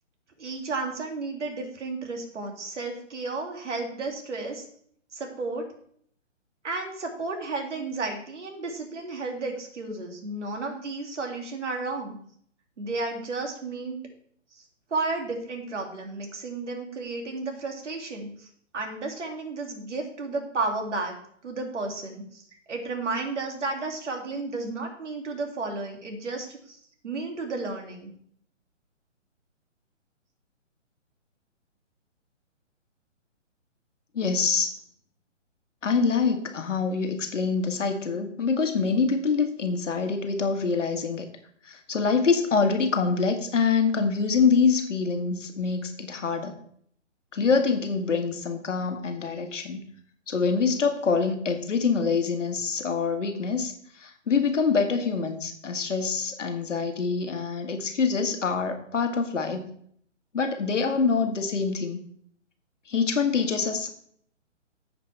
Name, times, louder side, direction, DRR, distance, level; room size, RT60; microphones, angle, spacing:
voice 1, 0.4-4.6 5.1-5.6 6.6-12.2 12.8-14.0 14.9-18.5 18.7-21.1 21.4-22.4 22.7-26.8 27.0-28.1, right 3 dB, 70° right, 2 dB, 2.6 m, -32 dB
voice 2, 34.1-34.7 35.8-41.3 41.6-46.5 47.3-49.8 50.3-59.7 60.3-62.0 62.9-63.9, left 5 dB, 75° left, 5 dB, 1.7 m, -25 dB
14.5 x 5.2 x 3.3 m, 0.63 s
hypercardioid pair, 140°, 37 cm